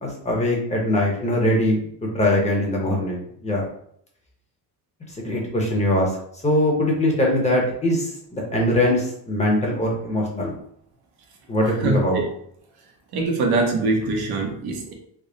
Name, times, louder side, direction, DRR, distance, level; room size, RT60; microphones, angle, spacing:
voice 1, 0.0-3.6 5.2-6.1 6.4-10.5 11.5-12.2, left 1 dB, 15° left, -2 dB, 0.8 m, -22 dB
voice 2, 11.8-12.2 13.1-14.9, right 3 dB, 65° right, 1 dB, 1.0 m, -23 dB
3.5 x 2.0 x 3.8 m, 0.68 s
cardioid pair, 140°, 39 cm